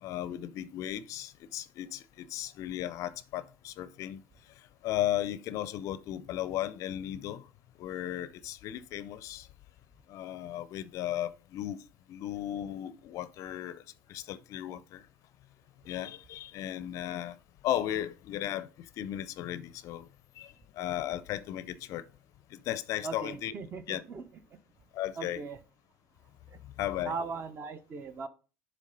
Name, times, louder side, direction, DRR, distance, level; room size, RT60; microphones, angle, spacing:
voice 1, 0.0-4.2 4.6-7.5 7.8-9.5 10.1-11.8 12.1-13.8 14.1-15.1 15.8-17.4 17.6-20.1 20.4-22.0 22.5-23.5 23.9-24.0 24.9-25.4 26.8-27.1, left 12 dB, 50° left, 0.4 m, -35 dB
voice 2, 23.0-24.6 25.2-25.6 26.5-26.6 27.0-28.3, right 4 dB, 35° right, 0.8 m, -39 dB
7.4 x 3.4 x 5.2 m
figure-of-eight pair, 70°, 7 cm